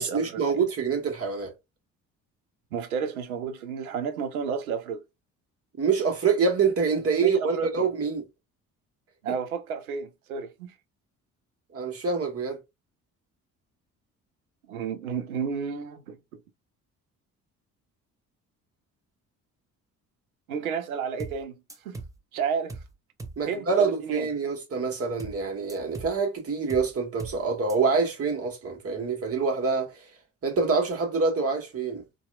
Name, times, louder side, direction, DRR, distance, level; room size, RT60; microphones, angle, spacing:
voice 1, 0.0-1.5 5.8-8.2 11.7-12.6 23.4-29.9 30.4-32.0, right 5 dB, 35° right, 1.1 m, -26 dB
voice 2, 2.7-5.0 7.2-7.9 9.2-10.7 14.7-16.4 20.5-22.0 22.3-22.8 23.5-24.3, right 6 dB, 85° right, 0.5 m, -32 dB
sound 1, 21.2-21.4 21.7-22.2 22.7-22.9 23.2-23.4 25.2-25.4 25.7-26.2 26.7-26.9 27.2-27.4 27.7-27.8, right 3 dB, 10° right, 0.5 m, -39 dB
2.7 x 2.2 x 2.3 m
figure-of-eight pair, 45°, 42 cm